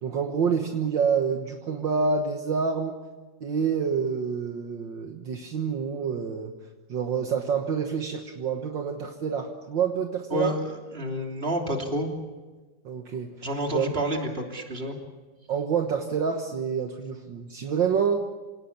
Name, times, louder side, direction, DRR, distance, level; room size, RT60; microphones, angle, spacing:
voice 1, 0.0-2.9 3.4-6.5 6.9-10.6 12.8-13.3 13.7-13.9 15.5-18.3, right 6 dB, 65° right, 4 dB, 2.0 m, -27 dB
voice 2, 10.3-12.1 13.1-15.0, equal, 25° right, 2 dB, 3.3 m, -29 dB
27.5 x 18.5 x 7.2 m, 1.3 s
omnidirectional pair, 2.3 m